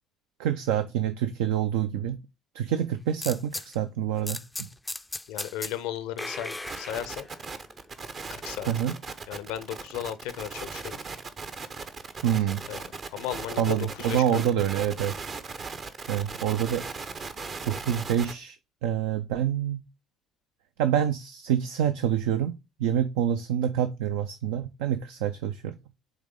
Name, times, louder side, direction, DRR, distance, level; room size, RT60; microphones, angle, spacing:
voice 1, 0.4-2.2 2.5-4.7 8.7-8.9 12.2-12.6 13.6-15.3 16.1-16.8 17.6-18.6 18.8-19.8 20.8-22.5 22.8-25.7, right 10 dB, 70° right, 0.3 m, -27 dB
sound 1, 3.2-3.7 4.3-5.8 6.2-7.6, left 2 dB, 15° left, 0.3 m, -37 dB
voice 2, 5.3-7.3 8.3-8.7 9.3-11.0 12.7-12.8 13.1-14.5, left 11 dB, 70° left, 0.5 m, -35 dB
sound 2, 6.6-18.3, right 4 dB, 45° right, 0.7 m, -38 dB
7.9 x 3.2 x 3.7 m
figure-of-eight pair, 50°, 0 cm